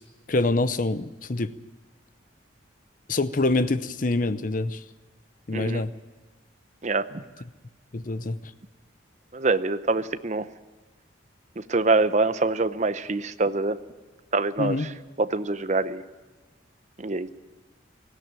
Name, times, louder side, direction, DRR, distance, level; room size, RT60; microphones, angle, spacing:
voice 1, 0.3-1.5 3.1-4.8 5.5-5.9 7.9-8.4 14.6-14.9, left 2 dB, 45° left, 13 dB, 0.7 m, -25 dB
voice 2, 5.5-5.8 6.8-7.2 9.3-10.5 11.6-13.8 14.3-14.9 15.2-16.0 17.0-17.3, right 3 dB, 40° right, 12 dB, 0.7 m, -25 dB
18.5 x 16.5 x 8.9 m, 1.2 s
head